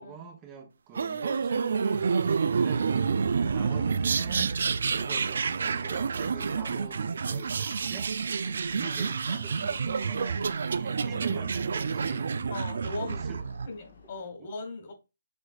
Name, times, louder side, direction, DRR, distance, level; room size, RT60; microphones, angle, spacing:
voice 1, 0.0-3.1 3.5-4.6 4.9-12.3 13.1-13.4 14.4-14.5, right 6 dB, 25° right, 0.8 m, -46 dB
sound 1, 0.9-13.7, right 5 dB, 65° right, 0.3 m, -28 dB
voice 2, 3.6-3.9 8.8-9.1 11.0-11.2 12.5-13.2 13.7-14.9, left 3 dB, 50° left, 1.7 m, -39 dB
sound 2, 4.6-14.3, left 4 dB, 65° left, 1.1 m, -55 dB
6.2 x 3.2 x 2.3 m
hypercardioid pair, 145°, 0 cm